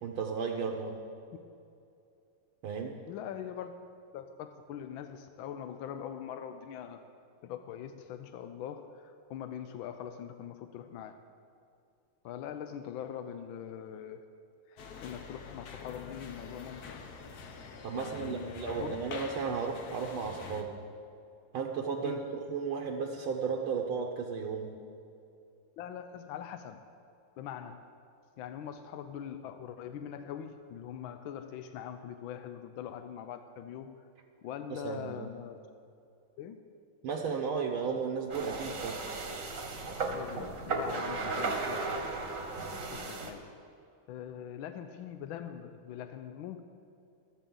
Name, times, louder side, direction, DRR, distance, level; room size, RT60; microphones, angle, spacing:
voice 1, 0.0-1.0 2.6-3.0 17.8-20.8 21.5-22.2 22.5-24.8 34.7-35.3 37.0-39.0, right 5 dB, 75° right, 1 dB, 1.6 m, -34 dB
voice 2, 3.1-3.7 4.1-7.1 7.4-11.2 12.2-14.2 14.7-17.0 17.9-19.0 22.0-22.3 25.8-26.8 27.4-27.9 28.4-34.0 34.4-35.6 36.4-36.6 40.1-42.2 42.8-43.5 44.1-46.6, left 9 dB, 75° left, 8 dB, 1.3 m, -42 dB
sound 1, 14.8-20.6, left 5 dB, 55° left, 1.1 m, -45 dB
sound 2, 38.3-43.3, right 3 dB, 45° right, 1.3 m, -35 dB
15.0 x 13.0 x 3.8 m, 2.5 s
omnidirectional pair, 2.4 m